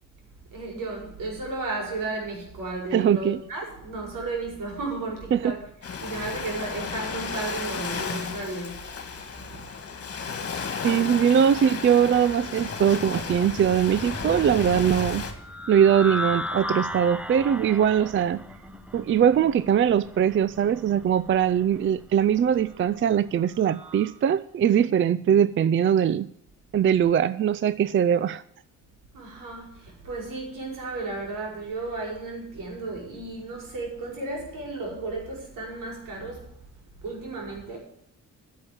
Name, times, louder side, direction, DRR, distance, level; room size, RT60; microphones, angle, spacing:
voice 1, 0.5-5.7 6.0-8.9 9.5-9.7 29.1-36.5 37.0-37.8, right 2 dB, 80° right, 5.4 m, -34 dB
voice 2, 2.9-3.4 5.3-5.6 10.8-15.2 15.7-18.4 18.9-26.3 26.7-28.4, right 9 dB, 40° right, 0.4 m, -21 dB
Ocean, 5.8-15.3, left 5 dB, 45° left, 2.1 m, -34 dB
sound 1, 12.3-24.2, left 1 dB, 5° right, 0.9 m, -37 dB
11.0 x 7.3 x 8.7 m
cardioid pair, 110°, 32 cm